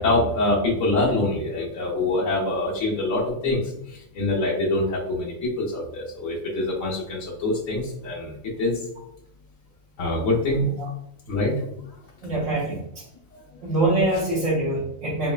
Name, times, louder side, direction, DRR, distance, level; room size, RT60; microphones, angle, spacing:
voice 1, 0.0-3.6 3.9-8.8 10.0-10.7 11.3-11.6, left 2 dB, 65° left, -4 dB, 1.2 m, -25 dB
voice 2, 12.2-12.8 13.6-15.3, right 2 dB, 65° right, -8 dB, 1.2 m, -24 dB
4.1 x 2.1 x 2.3 m, 0.76 s
omnidirectional pair, 1.4 m